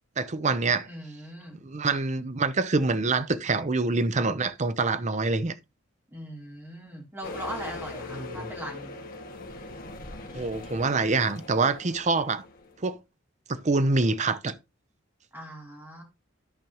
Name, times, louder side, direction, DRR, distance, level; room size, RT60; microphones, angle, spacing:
voice 1, 0.2-0.9 1.6-5.5 8.1-8.5 10.3-12.4 12.8-13.0 13.5-14.5, right 3 dB, 35° right, 0.6 m, -26 dB
voice 2, 0.8-1.6 6.1-8.9 15.3-16.0, equal, 10° right, 3.2 m, -40 dB
sound 1, 7.2-12.8, left 2 dB, 45° left, 1.7 m, -41 dB
13.5 x 5.1 x 2.9 m
head